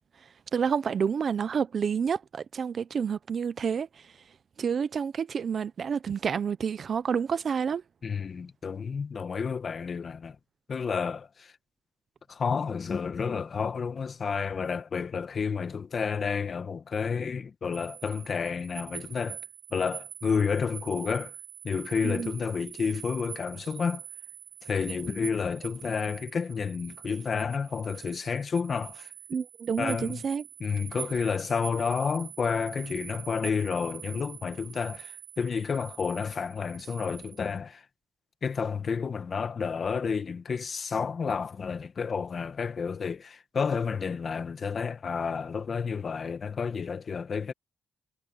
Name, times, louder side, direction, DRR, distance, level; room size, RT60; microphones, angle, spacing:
voice 1, 0.5-3.9 4.6-7.8 22.0-22.3 29.3-30.4, right 6 dB, 55° right, 0.9 m, -29 dB
voice 2, 8.0-10.3 10.7-11.5 12.3-19.4 19.7-21.3 21.6-24.0 24.6-29.1 29.8-30.2 30.6-37.8 38.4-47.5, left 6 dB, 50° left, 1.6 m, -30 dB
sound 1, 17.7-37.6, right 10 dB, 85° right, 0.8 m, -45 dB
cardioid pair, 85°, 0 cm